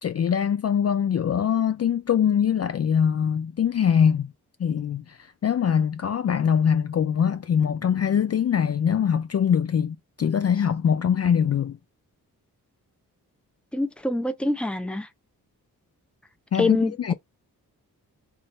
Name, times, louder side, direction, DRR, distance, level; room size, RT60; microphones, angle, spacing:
voice 1, 0.0-4.3 4.6-11.8 16.5-17.1, left 8 dB, 40° left, 0.4 m, -23 dB
voice 2, 13.7-15.1 16.6-17.1, left 2 dB, 5° left, 0.7 m, -25 dB
2.6 x 2.1 x 4.0 m
supercardioid pair, 40°, 39 cm